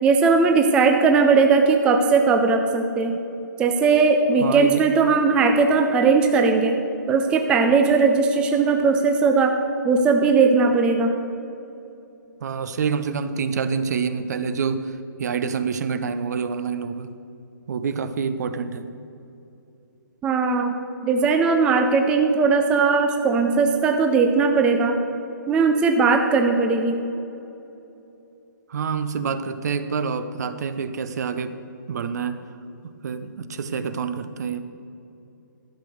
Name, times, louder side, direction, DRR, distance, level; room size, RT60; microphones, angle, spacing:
voice 1, 0.0-3.2 3.6-6.8 7.1-9.5 9.8-11.1 20.2-20.7 21.0-25.0 25.5-27.0, right 4 dB, 10° right, 4 dB, 0.4 m, -18 dB
voice 2, 4.4-4.9 12.4-17.1 17.7-18.9 28.7-31.6 31.9-32.4 33.0-34.6, right 6 dB, 55° right, 11 dB, 0.7 m, -27 dB
11.5 x 5.9 x 6.5 m, 2.9 s
hypercardioid pair, 155°, 11 cm